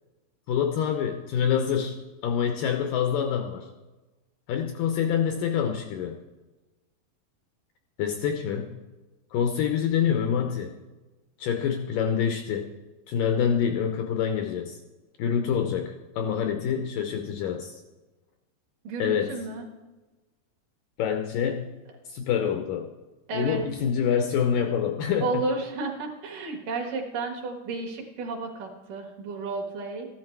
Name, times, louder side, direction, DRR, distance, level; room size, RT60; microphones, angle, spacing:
voice 1, 0.5-3.7 4.5-6.2 8.0-8.8 9.3-10.7 11.4-12.7 13.1-14.8 15.2-17.8 19.0-19.3 21.0-21.8 22.1-22.9 23.3-25.3, left 8 dB, 80° left, 5 dB, 2.0 m, -26 dB
voice 2, 18.8-19.7 23.3-23.6 25.2-30.1, right 3 dB, 60° right, 1 dB, 2.9 m, -32 dB
14.5 x 12.0 x 4.6 m, 1.1 s
omnidirectional pair, 4.7 m